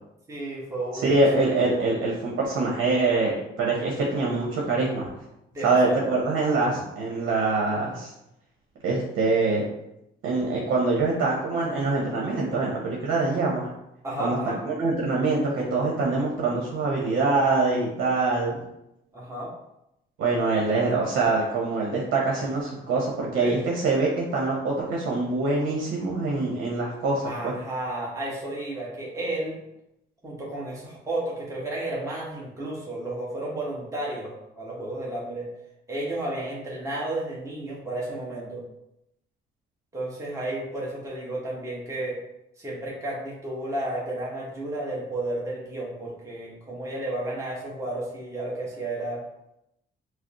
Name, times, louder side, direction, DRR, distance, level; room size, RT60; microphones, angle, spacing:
voice 1, 0.3-1.8 5.5-6.0 14.0-14.6 19.1-19.5 23.4-23.6 27.2-29.6 30.2-35.5 35.9-38.6 39.9-42.2 42.6-49.2, right 1 dB, 15° right, -5 dB, 1.1 m, -32 dB
voice 2, 0.9-5.1 5.6-8.1 8.8-9.6 10.2-13.7 14.2-18.6 20.2-27.5, right 3 dB, 80° right, -3 dB, 0.9 m, -24 dB
4.9 x 2.0 x 2.9 m, 0.85 s
cardioid pair, 90°, 20 cm